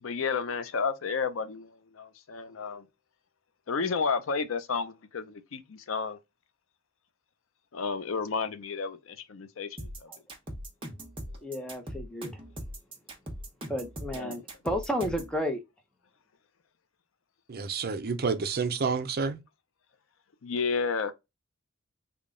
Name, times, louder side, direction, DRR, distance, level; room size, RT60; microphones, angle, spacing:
voice 1, 0.0-2.8 3.7-6.2 7.7-10.1 14.1-14.4 20.4-21.1, left 5 dB, 85° left, 0.5 m, -32 dB
sound 1, 9.8-15.3, right 1 dB, 25° right, 1.1 m, -40 dB
voice 2, 11.4-12.3 13.7-15.6, equal, 5° left, 0.8 m, -32 dB
voice 3, 17.5-19.4, right 5 dB, 50° right, 0.5 m, -29 dB
3.6 x 2.3 x 3.7 m
head